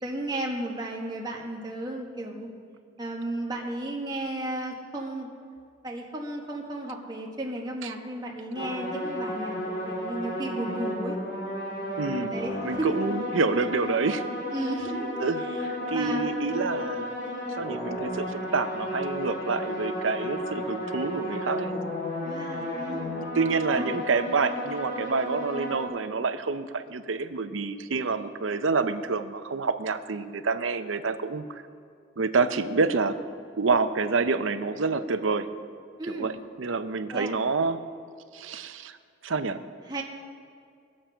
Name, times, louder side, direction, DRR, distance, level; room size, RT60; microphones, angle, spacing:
voice 1, 0.0-2.5 3.0-5.3 5.8-11.2 12.3-13.0 14.5-15.6 15.9-16.3 22.2-23.2 23.7-24.0 36.0-36.3 37.1-37.4 39.9-40.0, right 1 dB, 20° right, -1 dB, 1.5 m, -34 dB
sound 1, 8.6-25.9, left 1 dB, 60° left, 2.6 m, -33 dB
voice 2, 12.0-12.3 12.6-14.2 15.2-17.1 17.6-21.7 23.2-31.6 32.2-33.2 33.6-35.5 36.1-36.3 36.6-37.8 38.3-39.0 39.2-39.6, right 4 dB, 85° right, 10 dB, 0.7 m, -28 dB
20.0 x 7.5 x 5.7 m, 2.3 s
head